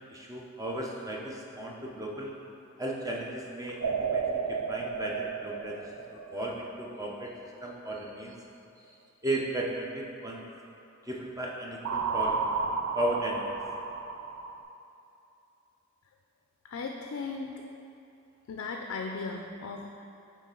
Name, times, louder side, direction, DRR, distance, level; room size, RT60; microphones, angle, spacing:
voice 1, 0.0-2.3 2.8-7.3 7.6-8.4 8.8-8.9 9.2-10.4 11.0-12.5 12.9-13.5, right 1 dB, 15° right, -2 dB, 0.5 m, -35 dB
sound 1, 3.8-7.0 11.8-14.6, right 5 dB, 85° right, 0.4 m, -32 dB
voice 2, 16.6-17.5 18.5-20.1, left 4 dB, 70° left, 2 dB, 0.4 m, -37 dB
8.5 x 3.3 x 3.8 m, 2.7 s
head